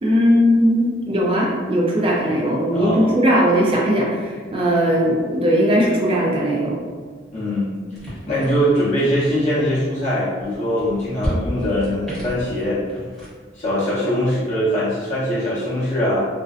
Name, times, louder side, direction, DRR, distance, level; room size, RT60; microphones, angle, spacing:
voice 1, 0.0-6.8, equal, 30° right, -3 dB, 0.4 m, -18 dB
voice 2, 2.7-3.1 7.3-7.7 8.3-12.8 13.5-16.2, equal, 40° left, -10 dB, 0.7 m, -21 dB
sound 1, 7.9-13.3, equal, 5° left, 0.9 m, -33 dB
2.5 x 2.1 x 2.4 m, 1.5 s
head